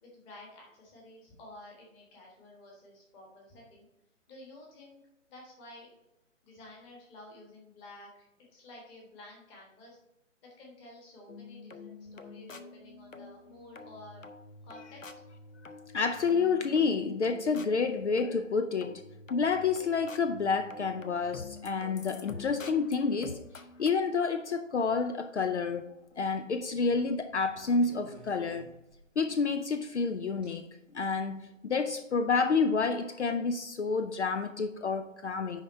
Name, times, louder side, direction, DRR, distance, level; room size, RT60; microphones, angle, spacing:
voice 1, 0.0-3.9 4.3-5.0 5.3-5.9 6.4-8.3 8.5-10.0 10.4-14.3 14.6-15.1, left 1 dB, 15° left, 1.4 m, -51 dB
sound 1, 11.3-23.9, left 4 dB, 85° left, 0.8 m, -47 dB
voice 2, 15.9-19.0 19.3-23.4 23.8-25.9 26.2-28.7 29.2-30.7 30.9-35.6, left 5 dB, 60° left, 0.6 m, -29 dB
sound 2, 25.8-26.2 27.5-29.3 30.4-30.5 31.4-31.6, right 4 dB, 10° right, 0.5 m, -54 dB
10.0 x 3.6 x 4.2 m
figure-of-eight pair, 145°, 38 cm